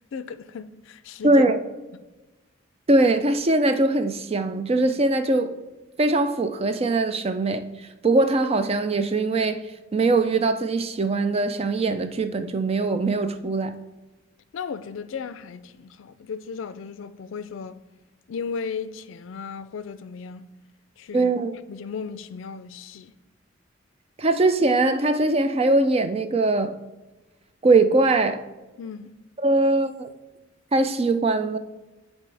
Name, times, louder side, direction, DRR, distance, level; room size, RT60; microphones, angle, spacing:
voice 1, 0.0-1.4 14.5-17.8 18.3-20.5 21.0-21.3 21.7-23.1 28.8-29.2, left 5 dB, 75° left, 0.4 m, -35 dB
voice 2, 1.2-1.6 2.9-5.5 6.0-9.6 9.9-13.8 21.1-21.5 24.2-26.7 27.6-28.4 29.4-30.1 30.7-31.6, right 2 dB, 30° right, 0.4 m, -21 dB
9.4 x 4.2 x 3.3 m
head